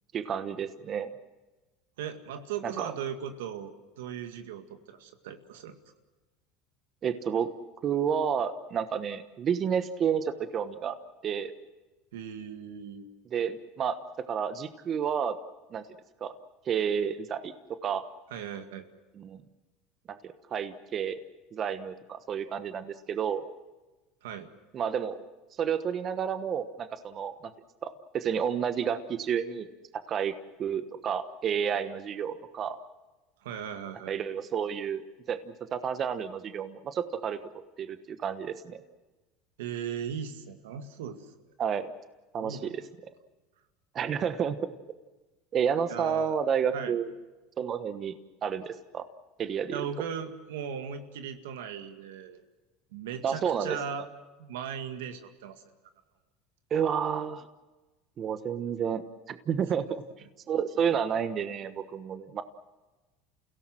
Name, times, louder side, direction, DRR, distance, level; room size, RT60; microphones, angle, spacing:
voice 1, 0.1-1.1 2.6-2.9 7.0-7.5 7.8-11.0 11.2-11.5 13.3-14.0 14.3-15.4 15.7-15.8 16.2-16.3 16.6-17.5 17.8-18.0 19.2-19.4 20.1-21.2 21.5-23.4 24.7-25.3 25.6-27.4 27.8-29.7 30.1-30.3 30.6-32.8 34.0-37.4 37.8-38.8 41.6-41.9 42.3-42.8 43.9-44.7 45.5-47.1 47.6-49.0 49.4-49.8 53.2-53.8 56.7-57.4 58.2-59.0 59.3-60.0 60.5-62.4, right 7 dB, 40° right, 11 dB, 1.2 m, -30 dB
voice 2, 2.0-5.8 12.1-13.1 18.3-18.9 24.2-24.5 33.4-34.2 39.6-41.2 42.4-42.7 45.9-46.4 46.7-46.9 49.7-52.4 52.9-54.1 54.4-55.6, right 8 dB, 85° right, 8 dB, 2.0 m, -38 dB
29.0 x 17.0 x 7.7 m, 1.2 s
supercardioid pair, 110°, 0 cm